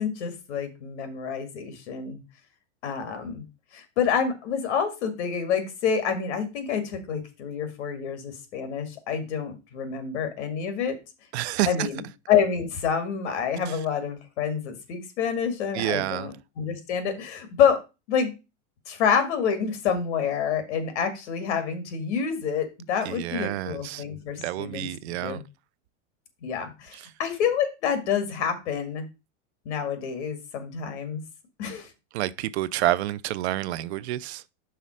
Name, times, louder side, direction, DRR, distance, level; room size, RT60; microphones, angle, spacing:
voice 1, 0.0-2.2 2.8-3.5 3.7-11.0 11.7-12.0 12.3-17.8 18.1-18.3 18.9-24.9 25.2-25.4 26.4-29.1 29.7-31.2 31.6-31.9, left 7 dB, 65° left, 2.0 m, -27 dB
voice 2, 11.3-11.9 13.7-13.8 15.7-16.3 23.0-24.0 24.4-25.4 26.9-27.1 32.1-34.4, right 15 dB, 60° right, 0.5 m, -28 dB
5.7 x 4.0 x 6.2 m
supercardioid pair, 180°, 37 cm